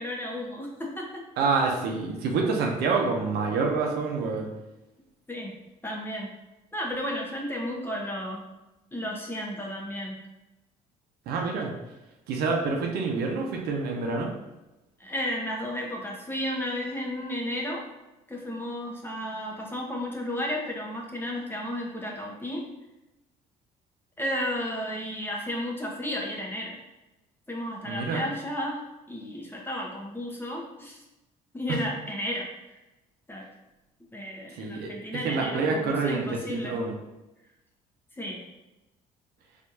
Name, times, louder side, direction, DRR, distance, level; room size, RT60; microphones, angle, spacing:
voice 1, 0.0-1.2 5.3-5.5 5.8-6.3 6.7-8.5 8.9-10.2 15.0-17.8 18.3-22.6 24.2-26.7 27.5-28.8 29.1-31.0 31.5-32.5 33.3-33.5 34.1-36.7 38.2-38.4, left 1 dB, 10° left, -2 dB, 1.0 m, -33 dB
voice 2, 1.4-4.5 11.3-11.7 12.3-14.3 27.8-28.2 31.7-31.8 34.5-37.0, right 4 dB, 70° right, 0 dB, 0.7 m, -27 dB
4.3 x 2.6 x 2.7 m, 1.0 s
supercardioid pair, 65°, 17 cm